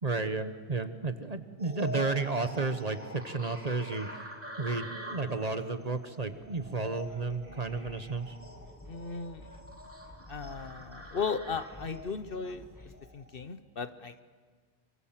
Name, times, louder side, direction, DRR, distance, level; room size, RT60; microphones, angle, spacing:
voice 1, 0.0-4.2 4.6-8.4, right 3 dB, 35° right, 10 dB, 1.2 m, -32 dB
sound 1, 1.6-13.3, left 1 dB, 10° right, 3.8 m, -45 dB
sound 2, 6.3-13.0, left 1 dB, 15° left, 1.4 m, -53 dB
voice 2, 8.9-9.5 10.3-12.6 13.1-14.2, left 5 dB, 55° left, 11 dB, 1.2 m, -36 dB
26.5 x 24.0 x 7.5 m, 1.5 s
omnidirectional pair, 1.1 m